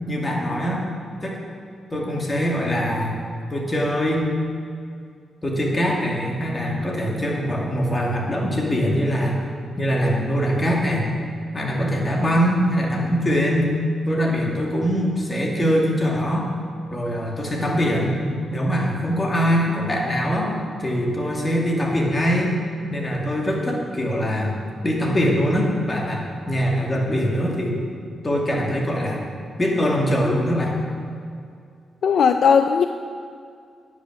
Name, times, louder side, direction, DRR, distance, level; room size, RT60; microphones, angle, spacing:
voice 1, 0.1-0.8 1.2-1.4 1.9-3.1 3.5-4.3 5.4-9.3 9.8-11.1 11.5-13.7 14.1-16.5 16.9-18.2 18.5-20.5 20.8-22.5 22.9-24.5 24.8-27.8 28.2-29.2 29.6-30.7, equal, 30° left, -2 dB, 2.2 m, -22 dB
voice 2, 32.0-32.9, left 6 dB, 70° left, 7 dB, 0.3 m, -17 dB
9.7 x 6.1 x 6.2 m, 2.3 s
cardioid pair, 60°, 0 cm